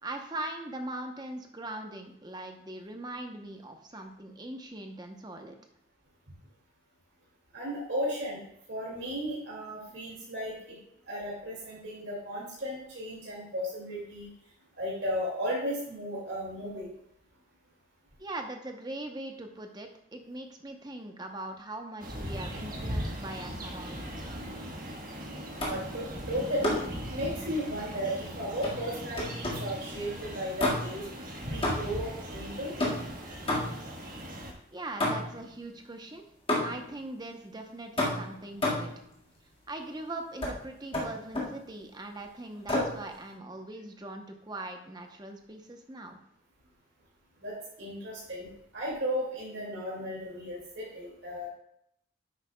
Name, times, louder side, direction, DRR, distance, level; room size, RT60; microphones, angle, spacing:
voice 1, 0.0-5.6 18.2-24.4 34.7-36.2 36.6-38.9 39.7-46.2, right 1 dB, 20° right, 4 dB, 0.8 m, -41 dB
voice 2, 7.5-8.4 8.7-10.8 11.1-14.3 14.8-16.9 25.6-31.0 31.5-32.7 47.4-48.5 48.7-51.5, equal, 70° right, -5 dB, 2.3 m, -35 dB
sound 1, 22.0-34.5, equal, 45° right, 1.5 m, -39 dB
sound 2, 25.6-25.9 26.6-27.0 28.6-29.7 30.6-31.1 31.6-32.1 32.8-33.9 35.0-35.5 36.5-36.9 38.0-39.0 40.4-40.6 40.9-41.6 42.7-43.0, left 1 dB, 30° left, 1.8 m, -31 dB
10.0 x 8.1 x 2.3 m, 0.76 s
head